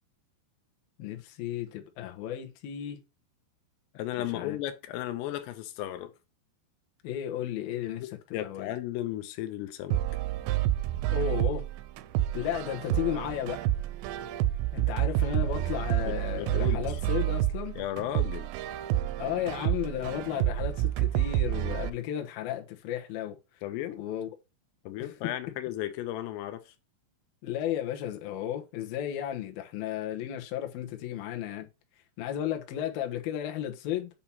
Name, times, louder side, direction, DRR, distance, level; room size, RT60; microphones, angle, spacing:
voice 1, 1.0-3.0 4.1-4.6 7.0-8.7 11.1-11.6 12.3-13.6 14.7-17.8 19.2-23.4 23.9-24.3 25.0-25.1 27.4-31.7 32.2-34.1, left 11 dB, 70° left, 2.6 m, -34 dB
voice 2, 3.9-6.1 7.9-10.0 16.1-16.8 17.8-18.5 23.6-24.0 24.9-26.7, left 13 dB, 85° left, 2.8 m, -35 dB
sound 1, 9.9-21.9, right 13 dB, 90° right, 2.8 m, -29 dB
8.4 x 2.9 x 5.7 m
omnidirectional pair, 4.8 m